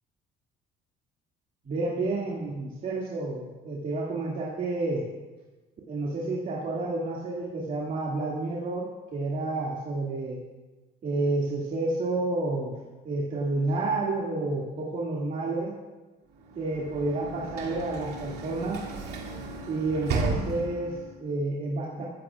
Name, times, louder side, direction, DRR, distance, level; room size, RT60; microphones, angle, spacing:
voice 1, 1.6-5.1 5.9-10.4 11.0-12.7 13.0-15.7 16.6-18.9 19.7-22.0, right 2 dB, 50° right, -5 dB, 2.3 m, -30 dB
Sliding door / Slam, 16.4-21.1, right 3 dB, 75° right, 2.5 m, -34 dB
22.0 x 14.0 x 2.5 m, 1.2 s
cardioid pair, 110°, 17 cm